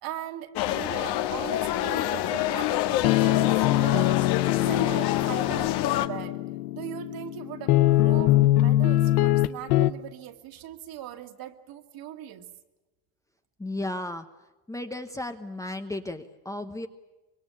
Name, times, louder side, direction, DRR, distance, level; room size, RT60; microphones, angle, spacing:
voice 1, 0.0-4.1 4.6-6.4 6.7-12.5, right 11 dB, 55° right, 6 dB, 2.4 m, -39 dB
sound 1, 0.5-6.1, left 13 dB, 65° left, 1.7 m, -27 dB
sound 2, 1.1-9.9, left 15 dB, 90° left, 1.1 m, -24 dB
voice 2, 13.6-14.3 14.7-16.9, left 1 dB, 5° left, 7 dB, 1.0 m, -34 dB
25.0 x 22.5 x 8.6 m, 1.1 s
cardioid pair, 140°, 44 cm